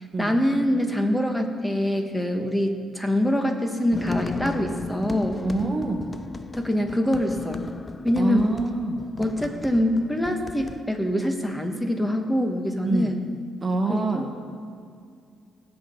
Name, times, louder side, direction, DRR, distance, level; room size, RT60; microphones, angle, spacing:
voice 1, 0.0-5.5 6.6-7.6 8.0-8.5 9.2-13.3 13.9-14.3, left 1 dB, 10° left, 5 dB, 1.4 m, -24 dB
sound 1, 3.9-10.8, left 3 dB, 25° left, 0.6 m, -36 dB
voice 2, 5.4-6.1 8.2-9.0 12.8-13.1 13.6-14.3, right 3 dB, 30° right, 3 dB, 1.4 m, -26 dB
19.0 x 7.4 x 5.5 m, 2.2 s
cardioid pair, 90°, 0 cm